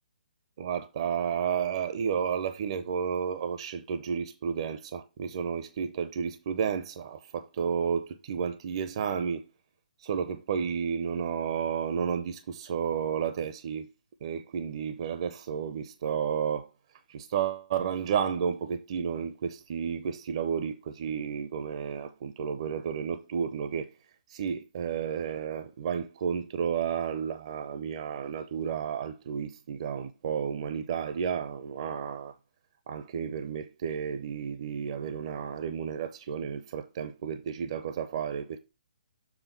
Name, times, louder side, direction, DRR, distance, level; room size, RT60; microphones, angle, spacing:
voice 1, 0.6-9.4 10.0-13.9 14.2-16.7 17.1-23.9 24.3-32.3 32.9-38.6, right 7 dB, 40° right, 0.6 m, -32 dB
7.2 x 3.7 x 5.8 m
figure-of-eight pair, 130°, 4 cm